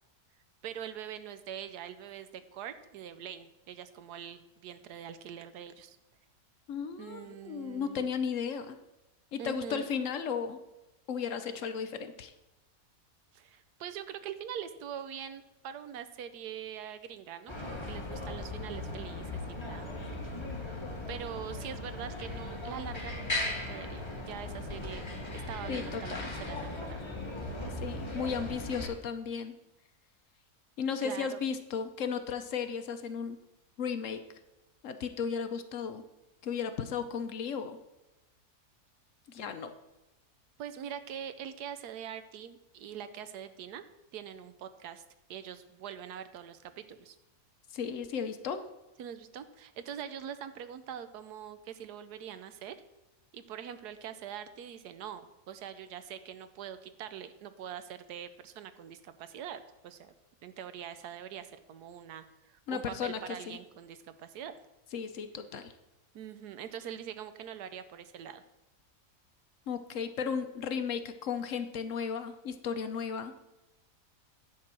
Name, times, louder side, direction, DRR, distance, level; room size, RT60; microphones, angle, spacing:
voice 1, 0.6-6.0 7.0-8.1 9.4-9.8 13.3-19.9 20.6-20.8 21.1-27.1 31.0-31.4 40.6-43.9 44.1-45.0 45.3-47.2 49.0-52.8 53.3-60.1 60.4-64.6 66.1-68.4, right 9 dB, 90° right, 11 dB, 1.3 m, -43 dB
voice 2, 6.7-8.8 9.3-10.6 11.1-12.3 25.7-26.3 27.8-29.5 30.8-33.4 33.8-34.2 34.8-36.0 36.4-37.8 39.3-39.7 47.7-48.6 62.7-63.6 64.9-65.7 69.7-73.3, left 6 dB, 60° left, 9 dB, 1.0 m, -35 dB
sound 1, 17.5-28.9, left 2 dB, 20° left, 1.2 m, -38 dB
10.0 x 4.7 x 7.4 m, 0.98 s
omnidirectional pair, 1.6 m